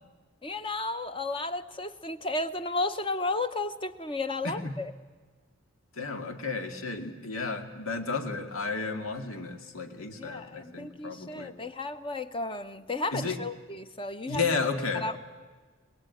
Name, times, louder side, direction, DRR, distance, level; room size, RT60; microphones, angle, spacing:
voice 1, 0.4-4.9 10.2-14.6 14.9-15.2, left 2 dB, 25° left, 10 dB, 0.8 m, -33 dB
voice 2, 4.4-4.8 5.9-11.5 13.1-13.4 14.3-15.1, left 4 dB, 85° left, 6 dB, 2.1 m, -33 dB
21.5 x 21.5 x 9.3 m, 1.4 s
head